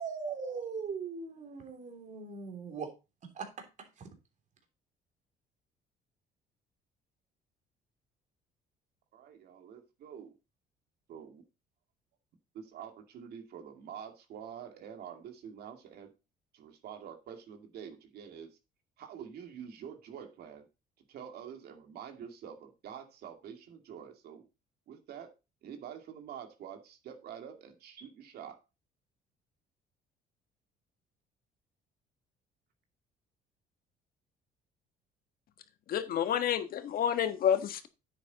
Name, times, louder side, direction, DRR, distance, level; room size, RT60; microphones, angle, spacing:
voice 1, 0.0-2.9 3.2-3.9, right 5 dB, 45° right, 3.2 m, -40 dB
voice 2, 9.1-10.3 11.1-11.4 12.5-16.1 16.5-18.6 19.0-20.7 21.1-24.5 24.9-25.3 25.6-28.6, right 8 dB, 70° right, 2.4 m, -47 dB
voice 3, 35.9-37.9, left 9 dB, 60° left, 1.5 m, -29 dB
9.9 x 8.4 x 4.1 m
cardioid pair, 110°, 17 cm